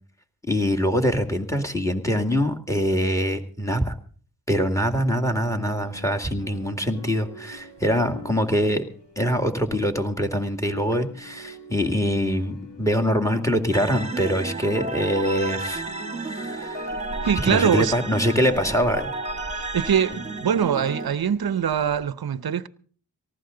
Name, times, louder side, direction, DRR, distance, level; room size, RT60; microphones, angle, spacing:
voice 1, 0.5-4.0 4.5-8.8 9.2-15.9 16.2-16.9 17.4-19.1, equal, 5° left, 2.2 m, -24 dB
sound 1, 4.9-10.3 10.5-22.0, equal, 85° left, 5.1 m, -44 dB
sound 2, 13.7-21.1, right 2 dB, 15° right, 1.7 m, -32 dB
voice 2, 17.2-17.9 19.5-22.7, right 8 dB, 60° right, 0.8 m, -23 dB
18.5 x 15.0 x 3.9 m
cardioid pair, 45°, 42 cm